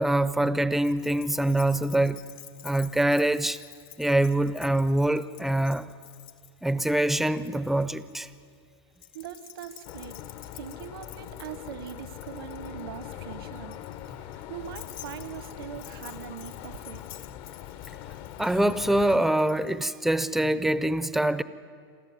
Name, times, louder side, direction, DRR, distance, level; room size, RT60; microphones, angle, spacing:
voice 1, 0.0-2.2 2.6-3.6 4.0-5.9 6.6-8.3 18.4-21.4, right 1 dB, ahead, 0.6 m, -24 dB
Keys jangling, 0.8-8.2 9.0-19.9, left 13 dB, 75° left, 1.7 m, -50 dB
voice 2, 9.1-10.2 10.4-13.7 14.1-17.0, right 10 dB, 75° right, 1.3 m, -41 dB
sound 1, 9.8-19.2, left 11 dB, 45° left, 0.9 m, -42 dB
27.5 x 13.0 x 9.6 m
supercardioid pair, 140°, 12 cm